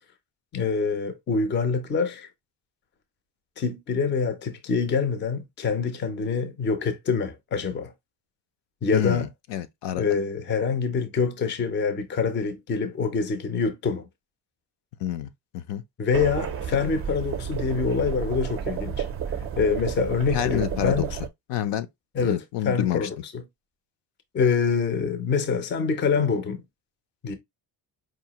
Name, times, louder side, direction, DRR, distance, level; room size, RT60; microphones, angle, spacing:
voice 1, 0.5-2.3 3.6-7.9 8.8-9.3 10.0-14.1 16.0-19.1 19.6-21.1 22.1-23.4 24.3-26.6 27.2-27.3, left 5 dB, 25° left, 0.5 m, -25 dB
voice 2, 8.9-10.0 15.0-15.3 15.5-15.8 16.7-16.8 20.3-21.0 21.5-21.9 22.2-23.1, left 12 dB, 70° left, 0.6 m, -28 dB
sound 1, 16.1-21.3, right 7 dB, 35° right, 0.4 m, -31 dB
4.8 x 2.6 x 2.8 m
cardioid pair, 180°, 44 cm